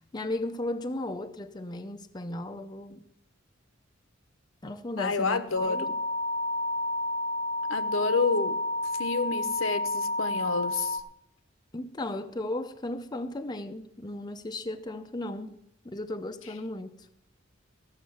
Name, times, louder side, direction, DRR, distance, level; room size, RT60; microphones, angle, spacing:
voice 1, 0.1-3.0 4.6-5.9 11.7-15.6 15.8-17.1, left 1 dB, 20° left, 0.6 m, -35 dB
voice 2, 5.0-5.9 7.7-8.5 9.0-11.0, left 4 dB, 80° left, 0.9 m, -29 dB
sound 1, 5.6-11.0, left 1 dB, 75° right, 1.7 m, -30 dB
14.5 x 6.5 x 7.8 m
head